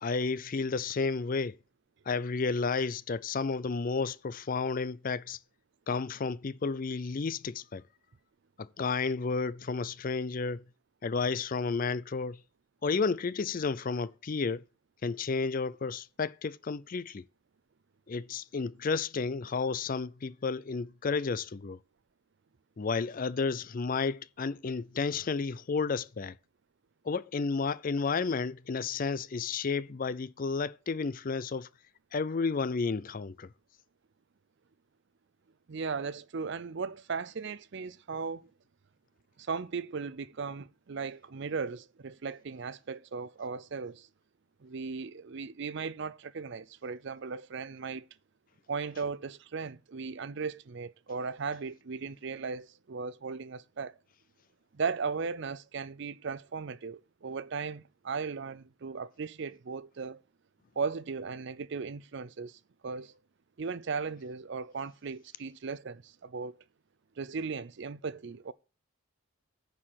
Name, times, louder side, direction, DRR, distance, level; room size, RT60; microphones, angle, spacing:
voice 1, 0.0-1.6 2.1-5.4 5.9-7.8 8.6-10.6 11.0-12.4 12.8-14.6 15.0-17.2 18.1-21.8 22.8-26.3 27.0-31.7 32.1-33.5, left 4 dB, 40° left, 0.4 m, -32 dB
voice 2, 35.7-38.4 39.4-44.1 44.6-48.1 48.7-54.0 54.7-60.2 60.8-63.1 63.6-66.6 67.2-68.5, right 5 dB, 55° right, 0.5 m, -37 dB
9.9 x 4.8 x 7.6 m
head